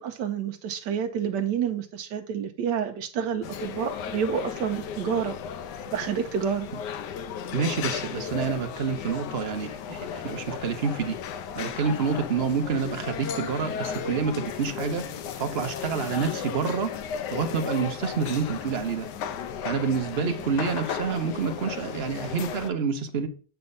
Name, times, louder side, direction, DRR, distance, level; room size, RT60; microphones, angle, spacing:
voice 1, 0.0-5.4 5.9-6.7, right 7 dB, 85° right, 1.2 m, -29 dB
sound 1, 3.4-22.7, left 8 dB, 80° left, 1.3 m, -35 dB
voice 2, 7.5-11.2 11.5-17.0 17.3-19.1 19.6-23.3, right 5 dB, 50° right, 0.8 m, -28 dB
7.8 x 3.5 x 5.3 m
omnidirectional pair, 1.8 m